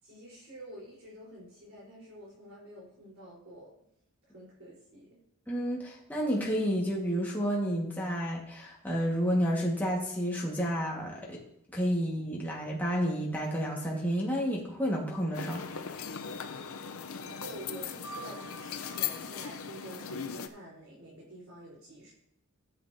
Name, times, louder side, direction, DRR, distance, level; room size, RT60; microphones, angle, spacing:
voice 1, 0.0-3.7 4.3-5.2 17.2-22.1, right 1 dB, 70° right, -6 dB, 3.9 m, -48 dB
voice 2, 5.5-11.4 11.7-15.6, equal, 10° left, -4 dB, 1.5 m, -30 dB
sound 1, 15.3-20.5, left 7 dB, 75° left, 0.6 m, -38 dB
14.0 x 7.9 x 2.7 m, 0.75 s
head